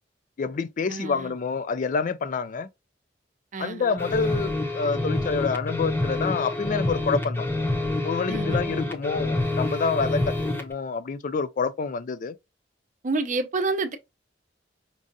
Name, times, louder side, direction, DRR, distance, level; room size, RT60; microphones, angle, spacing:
voice 1, 0.4-2.7 3.6-7.5 8.0-12.4, left 5 dB, 45° left, 0.4 m, -27 dB
voice 2, 0.9-1.4 3.5-4.1 8.3-8.8 13.0-14.0, right 3 dB, 45° right, 0.6 m, -29 dB
sound 1, 4.0-10.7, left 2 dB, 15° left, 0.7 m, -27 dB
5.3 x 2.4 x 2.6 m
head